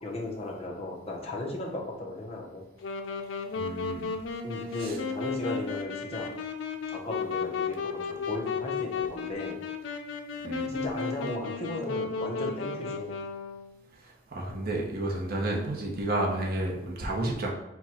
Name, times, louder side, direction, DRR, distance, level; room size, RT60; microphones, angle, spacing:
voice 1, 0.0-2.6 4.4-6.3 6.9-9.6 10.7-13.1, left 2 dB, 35° left, -2 dB, 0.9 m, -36 dB
Wind instrument woodwind instrument, 2.8-13.7, left 5 dB, 80° left, 0.5 m, -34 dB
voice 2, 3.5-4.1 4.7-5.0 10.4-10.7 14.0-17.5, right 1 dB, 55° right, -1 dB, 0.9 m, -31 dB
4.6 x 2.3 x 4.3 m, 0.90 s
head